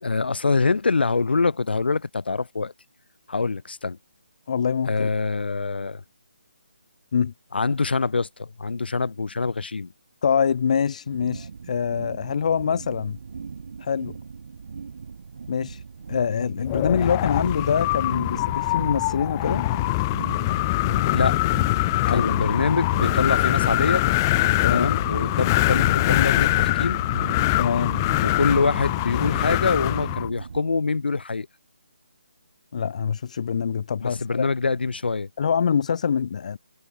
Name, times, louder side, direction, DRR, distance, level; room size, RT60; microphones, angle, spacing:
voice 1, 0.0-2.7 3.3-4.0 4.9-6.0 7.5-9.9 21.1-21.4 22.1-24.0 24.7-27.0 28.2-31.5 34.0-35.3, left 4 dB, 75° left, 2.1 m, -25 dB
voice 2, 4.5-5.1 7.1-7.3 10.2-13.2 13.8-14.2 15.5-15.8 16.1-19.7 22.0-22.4 24.6-24.9 27.6-28.0 32.7-34.5 35.4-36.6, left 7 dB, 40° left, 2.6 m, -24 dB
sound 1, 11.1-30.6, right 5 dB, 50° right, 3.8 m, -37 dB
Wind, 16.7-30.3, left 20 dB, 20° left, 3.2 m, -23 dB
hypercardioid pair, 170°, 6 cm